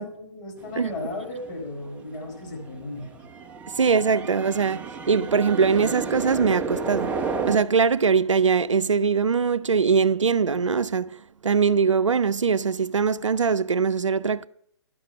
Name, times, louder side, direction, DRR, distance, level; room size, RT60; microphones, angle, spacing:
voice 1, 0.0-3.3, left 2 dB, 40° left, 4.6 m, -35 dB
sound 1, 0.6-7.6, right 4 dB, 10° right, 0.6 m, -32 dB
voice 2, 3.7-7.1 7.4-11.1 11.4-14.5, right 5 dB, 85° right, 0.5 m, -22 dB
11.5 x 6.5 x 6.6 m
figure-of-eight pair, 135°, 15 cm